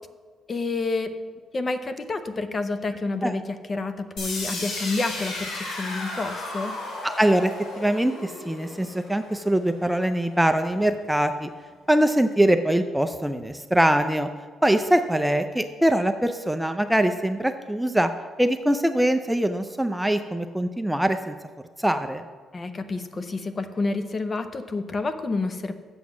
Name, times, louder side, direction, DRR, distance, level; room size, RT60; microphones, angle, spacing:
voice 1, 0.5-1.1 1.5-6.8 22.5-25.7, left 3 dB, 35° left, 10 dB, 0.7 m, -29 dB
sound 1, 4.2-10.1, left 2 dB, 80° left, 2.5 m, -34 dB
voice 2, 7.0-7.5 7.8-11.5 11.9-14.3 14.6-18.1 18.4-21.3 21.8-22.2, right 1 dB, 5° right, 8 dB, 0.5 m, -23 dB
7.7 x 7.2 x 6.1 m, 1.5 s
cardioid pair, 90°, 0 cm